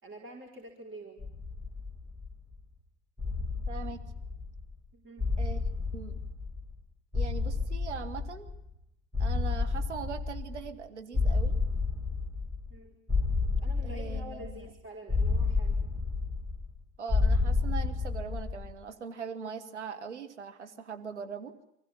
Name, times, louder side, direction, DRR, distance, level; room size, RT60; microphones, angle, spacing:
voice 1, 0.0-1.3 4.9-5.2 12.7-13.0 13.6-15.8, right 1 dB, 35° right, 0 dB, 4.4 m, -47 dB
sound 1, 1.2-2.5 3.2-4.7 5.2-6.8 7.1-8.7 9.1-10.8 11.1-12.8 13.1-14.7 15.1-16.8 17.1-18.7, left 4 dB, 10° right, 3.2 m, -30 dB
voice 2, 3.7-4.0 5.4-5.6 5.9-6.2 7.1-8.5 9.2-11.6 13.8-14.7 17.0-21.5, right 6 dB, 85° right, 7 dB, 1.7 m, -41 dB
25.0 x 15.0 x 9.9 m, 0.81 s
figure-of-eight pair, 65°, 34 cm